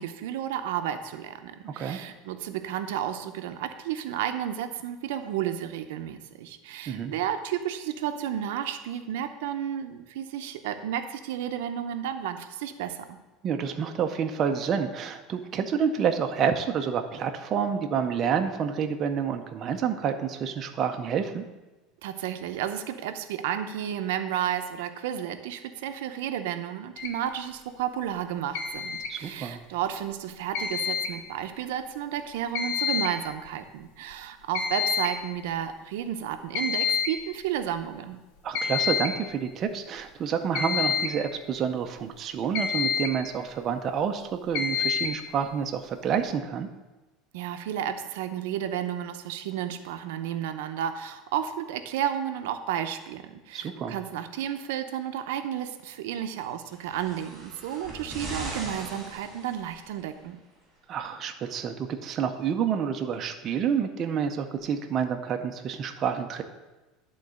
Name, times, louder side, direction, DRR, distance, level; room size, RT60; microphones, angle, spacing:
voice 1, 0.0-13.2 22.0-38.2 47.3-60.4, right 10 dB, 90° right, 8 dB, 0.6 m, -32 dB
voice 2, 13.4-21.4 29.1-29.6 38.4-46.7 53.5-54.0 60.9-66.4, right 7 dB, 30° right, 5 dB, 0.6 m, -28 dB
sound 1, 27.0-27.1 28.5-29.1 30.5-31.1 32.5-33.1 33.5-33.6 34.1-34.2 34.5-35.1 36.5-37.2 38.5-39.2 40.5-41.2 42.5-43.2 44.5-45.2, left 6 dB, 70° left, 0.9 m, -28 dB
sound 2, 56.7-60.0 61.0-61.1, right 2 dB, 15° right, 2.3 m, -40 dB
11.0 x 3.9 x 6.3 m, 1.1 s
cardioid pair, 160°, 0 cm